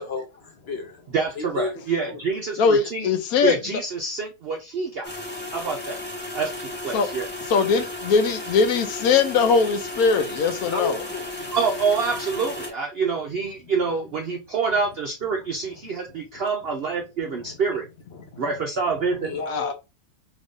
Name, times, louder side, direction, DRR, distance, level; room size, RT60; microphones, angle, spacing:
voice 1, 0.0-1.8 2.1-2.2 10.6-11.6 16.1-16.4 17.4-17.6 18.1-18.6 19.0-19.7, left 4 dB, 55° left, 0.7 m, -33 dB
voice 2, 1.1-3.1 3.4-5.1 5.5-6.0 6.3-7.3 11.5-17.9 18.4-19.4, right 5 dB, 65° right, 0.6 m, -26 dB
voice 3, 2.6-3.8 6.9-7.1 7.5-11.0 19.5-19.7, left 5 dB, 75° left, 1.0 m, -21 dB
sound 1, 5.0-12.7, left 2 dB, 10° left, 0.5 m, -34 dB
3.1 x 2.5 x 3.4 m
omnidirectional pair, 1.6 m